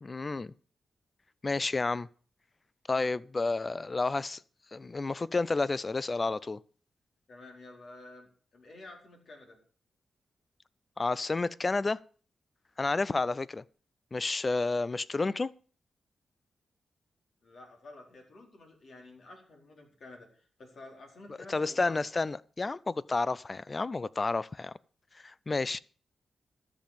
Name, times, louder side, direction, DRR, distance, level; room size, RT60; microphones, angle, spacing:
voice 1, 0.0-0.5 1.4-2.1 2.9-4.4 4.7-6.6 11.0-12.0 12.8-13.6 14.1-15.5 21.5-24.7 25.2-25.8, left 3 dB, 35° left, 0.5 m, -30 dB
voice 2, 7.3-9.6 17.4-22.1, left 2 dB, 65° left, 4.4 m, -50 dB
13.0 x 7.4 x 6.8 m
cardioid pair, 85°, 0 cm